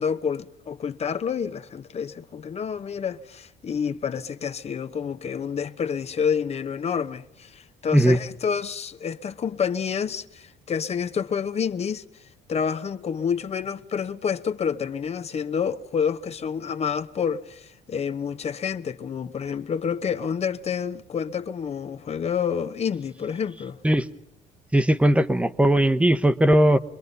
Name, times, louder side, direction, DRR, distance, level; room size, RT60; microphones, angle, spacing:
voice 1, 0.0-12.0 12.5-23.8, left 7 dB, 40° left, 1.0 m, -28 dB
voice 2, 24.7-26.8, right 1 dB, 5° right, 1.1 m, -18 dB
25.0 x 22.5 x 5.4 m
cardioid pair, 110°, 17 cm